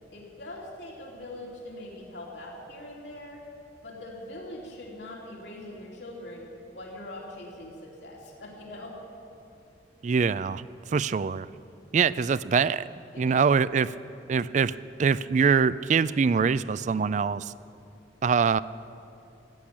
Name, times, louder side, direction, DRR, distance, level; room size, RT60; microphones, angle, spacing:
voice 1, 0.1-3.5 3.8-9.0 13.1-13.4, left 1 dB, 75° left, -2 dB, 3.1 m, -42 dB
voice 2, 10.0-10.7 10.9-11.5 11.9-12.9 13.2-13.9 14.3-14.7 15.0-17.5 18.2-18.6, right 5 dB, 40° right, 18 dB, 0.3 m, -23 dB
14.5 x 10.0 x 8.6 m, 2.8 s
head